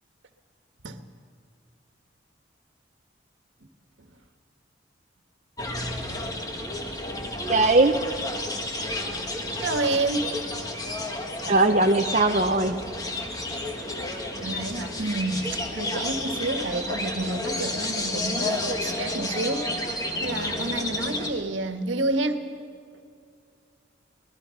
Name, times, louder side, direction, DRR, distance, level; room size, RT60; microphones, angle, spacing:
sound 1, 5.6-21.3, left 1 dB, 20° left, 1.6 m, -31 dB
voice 1, 7.5-8.0 11.5-12.8, right 2 dB, 40° right, 4 dB, 0.8 m, -20 dB
voice 2, 9.6-10.3 14.3-22.5, right 2 dB, 90° right, 7 dB, 1.5 m, -29 dB
25.0 x 20.0 x 5.8 m, 2.4 s
head